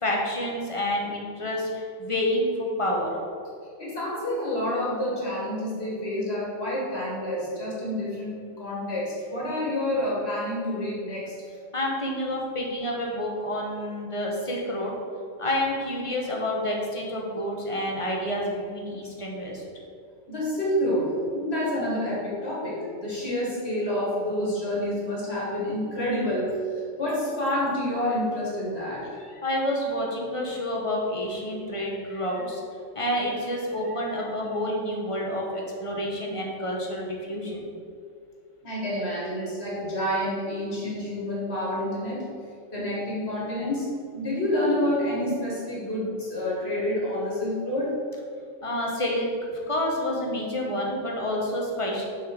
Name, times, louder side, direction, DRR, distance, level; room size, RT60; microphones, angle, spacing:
voice 1, 0.0-3.1 11.7-14.9 15.4-19.6 29.4-32.6 32.9-37.6 48.6-49.3 49.7-52.1, left 1 dB, 25° left, -1 dB, 1.3 m, -28 dB
voice 2, 3.8-11.3 20.3-26.6 27.0-29.1 38.6-42.2 42.7-48.0, left 1 dB, 55° left, -6 dB, 2.5 m, -28 dB
6.8 x 4.7 x 6.1 m, 2.3 s
omnidirectional pair, 1.3 m